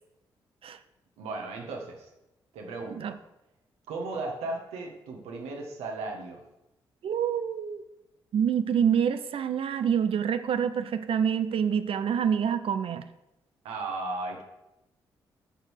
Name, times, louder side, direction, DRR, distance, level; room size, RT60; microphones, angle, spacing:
voice 1, 1.2-2.1 2.5-3.1 3.9-6.4 13.6-14.4, right 3 dB, 80° right, 1 dB, 1.7 m, -35 dB
voice 2, 7.0-7.8 8.3-13.0, right 8 dB, 60° right, 10 dB, 0.7 m, -26 dB
8.9 x 4.6 x 6.6 m, 0.90 s
hypercardioid pair, 45°, 11 cm